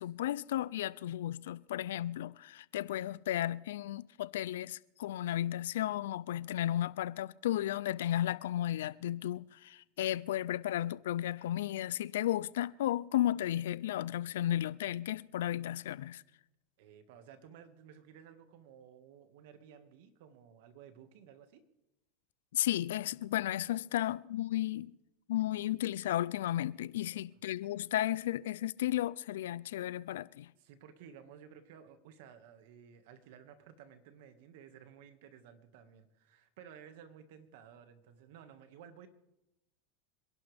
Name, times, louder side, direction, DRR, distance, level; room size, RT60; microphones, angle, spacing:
voice 1, 0.0-16.2 22.5-25.0 25.3-30.5, left 13 dB, 85° left, 0.5 m, -34 dB
voice 2, 16.8-21.6 27.1-27.2 30.6-39.1, right 8 dB, 70° right, 1.8 m, -55 dB
26.5 x 11.5 x 3.5 m
supercardioid pair, 125°, 0 cm